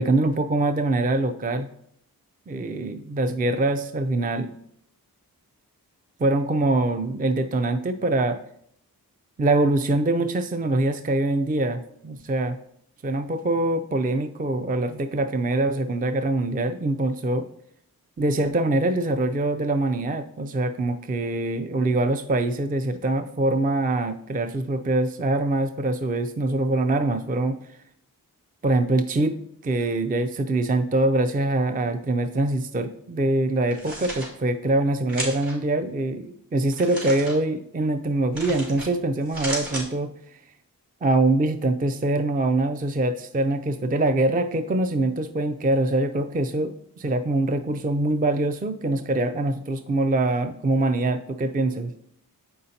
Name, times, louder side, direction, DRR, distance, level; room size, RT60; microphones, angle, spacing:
voice 1, 0.0-1.7 2.5-4.5 6.2-8.4 9.4-12.6 13.0-17.4 18.2-27.8 28.6-29.4 29.6-40.4 41.0-51.9, right 2 dB, 25° right, 8 dB, 0.4 m, -24 dB
Rustling Paper, 33.6-34.3 35.1-35.5 36.7-37.3 38.3-38.9 39.2-39.8, right 1 dB, 75° right, 2.7 m, -33 dB
7.6 x 5.4 x 2.8 m, 0.69 s
cardioid pair, 60°, 36 cm